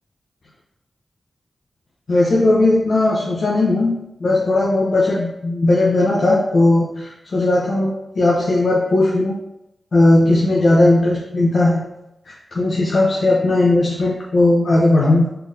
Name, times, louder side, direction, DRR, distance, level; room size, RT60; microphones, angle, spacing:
voice 1, 2.1-9.3 9.9-11.8 12.3-15.3, left 2 dB, 55° left, -3 dB, 0.9 m, -17 dB
4.6 x 3.9 x 5.4 m, 0.85 s
wide cardioid pair, 110°, 0 cm